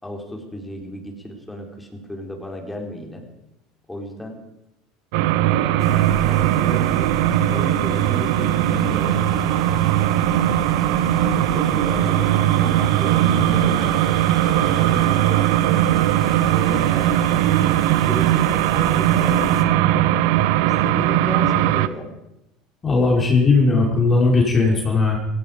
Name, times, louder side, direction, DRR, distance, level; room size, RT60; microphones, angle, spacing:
voice 1, 0.0-3.2 3.9-4.4 5.4-7.1 7.5-10.1 10.3-10.7 11.3-12.3 12.6-14.0 14.6-15.5 16.2-17.3 18.0-19.8 20.6-22.1, left 1 dB, 10° left, 2 dB, 4.4 m, -34 dB
sound 1, 5.1-21.9, right 13 dB, 70° right, 0.8 m, -19 dB
sound 2, 5.8-19.6, left 5 dB, 45° left, 2.4 m, -36 dB
voice 2, 22.8-25.2, left 3 dB, 30° left, -1 dB, 4.8 m, -17 dB
17.0 x 15.5 x 5.3 m, 0.89 s
hypercardioid pair, 85°, 0 cm